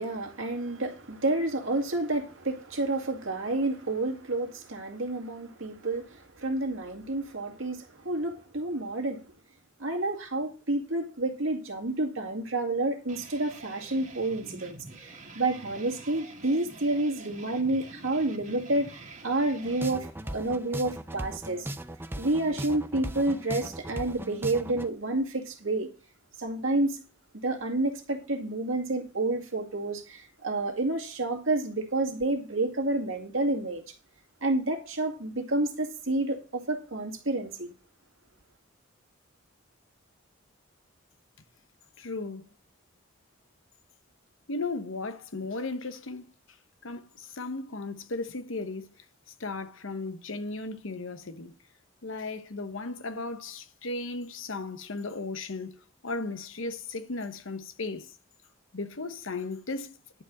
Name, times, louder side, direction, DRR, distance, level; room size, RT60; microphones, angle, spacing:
voice 1, 0.0-9.2 9.8-21.7 22.2-25.9 26.4-27.0 27.3-33.9 34.4-37.7, right 2 dB, 70° right, 2.2 m, -29 dB
sound 1, 13.1-20.0, right 3 dB, 35° right, 1.8 m, -47 dB
sound 2, 19.6-24.9, right 1 dB, 10° right, 0.5 m, -38 dB
voice 2, 42.0-42.5 44.5-46.2 46.8-49.0 49.4-51.5 52.0-58.1 58.7-60.0, left 3 dB, 70° left, 1.0 m, -36 dB
11.0 x 4.7 x 7.5 m
head